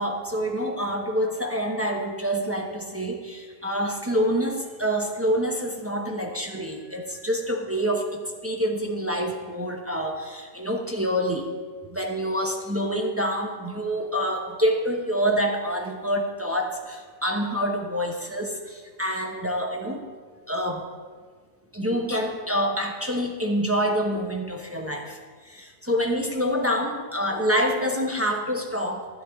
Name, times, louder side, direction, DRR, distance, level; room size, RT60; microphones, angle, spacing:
voice 1, 0.0-11.5 11.9-20.1 20.5-20.8 21.7-29.1, equal, 15° right, 1 dB, 0.6 m, -27 dB
12.0 x 9.8 x 3.5 m, 1.5 s
omnidirectional pair, 1.6 m